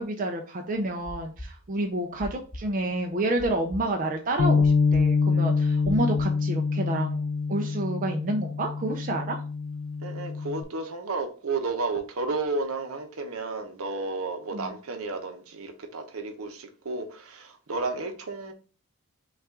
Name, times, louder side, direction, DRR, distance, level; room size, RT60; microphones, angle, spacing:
voice 1, 0.0-7.2 7.5-9.4 14.5-14.7, right 1 dB, 35° right, 0.4 m, -29 dB
sound 1, 0.8-4.0 4.3-6.2, equal, 15° left, 0.6 m, -41 dB
Bass guitar, 4.4-10.6, left 4 dB, 55° left, 0.4 m, -25 dB
voice 2, 10.0-18.5, right 3 dB, 70° right, 0.8 m, -32 dB
5.5 x 2.4 x 3.6 m
head